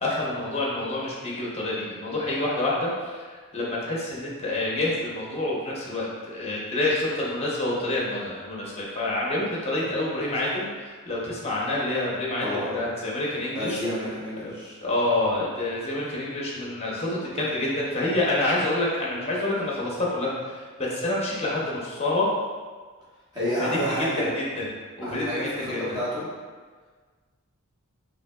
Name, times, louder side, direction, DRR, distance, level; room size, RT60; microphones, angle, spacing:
voice 1, 0.0-13.8 14.4-14.5 14.8-22.3 23.4-24.7 25.0-26.0, left 2 dB, 30° left, -4 dB, 0.9 m, -28 dB
voice 2, 12.4-12.8 13.5-14.8 23.3-24.3 25.0-26.2, equal, 20° right, -10 dB, 1.4 m, -29 dB
5.0 x 2.8 x 2.4 m, 1.5 s
head